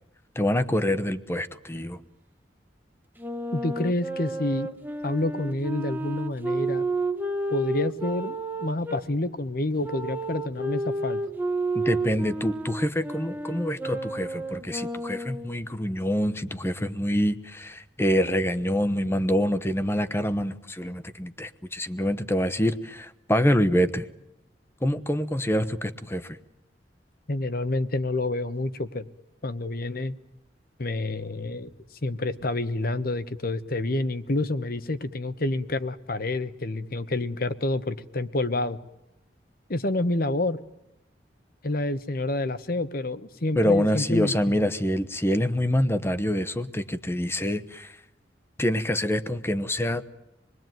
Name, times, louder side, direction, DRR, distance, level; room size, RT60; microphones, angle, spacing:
voice 1, 0.3-2.0 11.7-24.1 24.8-26.4 43.6-48.0 48.6-50.0, equal, 15° left, 12 dB, 1.0 m, -26 dB
Wind instrument woodwind instrument, 3.2-9.0 9.8-15.6, right 2 dB, 10° right, 1.1 m, -31 dB
voice 2, 3.5-4.7 5.0-6.8 7.5-11.2 27.3-29.1 29.4-30.2 30.8-31.7 32.0-38.8 39.7-40.6 41.6-44.6, left 2 dB, 55° left, 12 dB, 1.1 m, -28 dB
27.0 x 20.5 x 9.2 m, 0.91 s
head